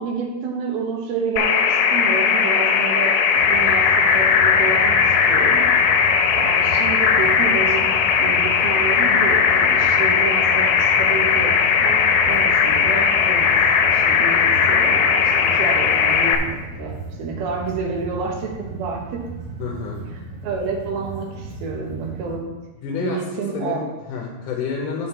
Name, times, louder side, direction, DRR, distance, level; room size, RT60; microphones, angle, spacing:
voice 1, 0.0-5.7 6.0-13.6 13.8-19.2 20.1-22.6 22.9-23.9, right 5 dB, 85° right, 0 dB, 3.1 m, -29 dB
sound 1, 1.4-16.3, left 6 dB, 85° left, 2.6 m, -17 dB
sound 2, 3.4-22.4, right 3 dB, 45° right, 2.4 m, -35 dB
voice 2, 19.6-20.0 22.8-23.2 23.5-25.1, left 6 dB, 70° left, -1 dB, 2.4 m, -28 dB
7.9 x 7.3 x 4.4 m, 1.0 s
omnidirectional pair, 4.2 m